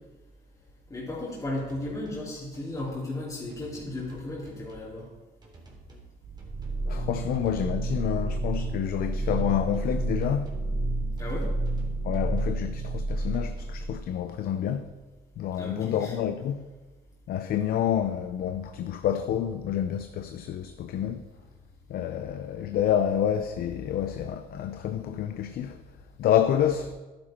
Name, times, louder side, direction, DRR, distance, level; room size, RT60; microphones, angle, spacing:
voice 1, 0.9-5.1 11.2-11.5 15.6-16.2, left 1 dB, 20° left, 3.2 m, -35 dB
sound 1, 1.6-2.3 2.5-3.0 3.5-4.9 5.4-6.1 6.4-6.8 7.3-8.0 8.3-8.8 9.3-9.9 10.2-10.7 11.2-12.6 13.1-13.8, right 3 dB, 25° right, 3.3 m, -51 dB
sound 2, 6.2-14.1, right 2 dB, 75° right, 3.7 m, -30 dB
voice 2, 6.9-10.5 12.0-14.8 15.4-16.6 17.3-21.2 21.9-25.8 26.2-26.9, left 10 dB, 60° left, 0.6 m, -28 dB
11.5 x 9.7 x 4.4 m
cardioid pair, 110°, 17 cm